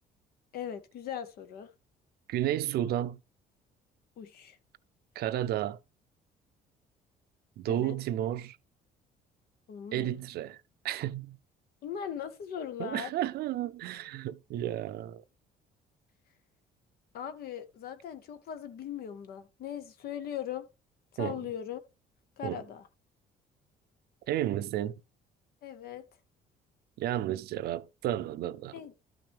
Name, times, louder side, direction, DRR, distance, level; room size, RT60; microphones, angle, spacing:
voice 1, 0.5-1.7 4.2-4.6 7.7-7.9 9.7-10.2 11.8-13.1 17.1-20.7 21.1-21.8 22.4-22.9 25.6-26.0 28.7-29.0, left 9 dB, 65° left, 0.9 m, -39 dB
voice 2, 2.3-3.2 5.2-5.8 7.6-8.6 9.9-10.6 10.8-11.4 12.8-15.2 21.2-21.4 22.4-22.6 24.3-25.0 27.0-28.7, right 12 dB, 70° right, 0.5 m, -32 dB
12.5 x 5.8 x 3.4 m
cardioid pair, 110°, 17 cm